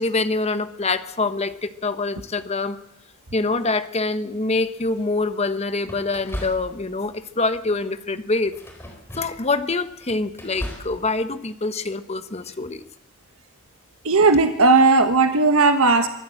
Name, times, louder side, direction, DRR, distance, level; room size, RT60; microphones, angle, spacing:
voice 1, 0.0-2.8 3.3-8.5 9.2-12.8, left 3 dB, 30° left, 11 dB, 1.0 m, -25 dB
sound 1, 4.5-4.9 5.8-7.1 7.4-7.8 8.4-9.5 9.9-11.0, equal, 10° left, 4.3 m, -36 dB
voice 2, 14.0-16.1, right 3 dB, 85° right, 7 dB, 1.3 m, -16 dB
24.5 x 14.5 x 7.7 m, 0.84 s
head